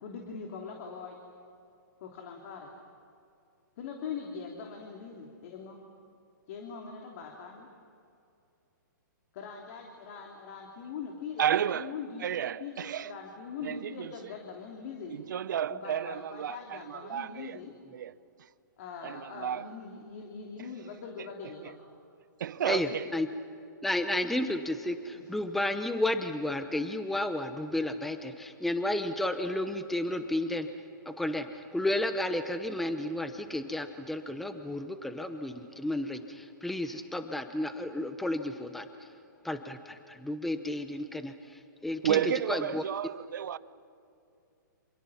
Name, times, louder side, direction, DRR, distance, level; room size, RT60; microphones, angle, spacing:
voice 1, 0.0-1.2 2.0-2.7 3.8-5.8 6.5-7.7 9.3-12.3 12.6-15.2 15.7-17.7 18.8-21.7 22.7-23.2 25.1-25.3, left 6 dB, 45° left, 3.0 m, -42 dB
voice 2, 11.4-11.9 12.2-13.1 13.6-14.1 15.1-17.6 17.9-18.1 18.4-18.5 19.0-19.7 21.6-21.7 22.4-23.1 42.0-43.6, right 9 dB, 65° right, 0.8 m, -32 dB
voice 3, 22.6-23.3 23.8-30.7 31.0-39.1 39.4-42.8, left 1 dB, ahead, 0.9 m, -32 dB
28.5 x 27.0 x 5.8 m
hypercardioid pair, 150°, 11 cm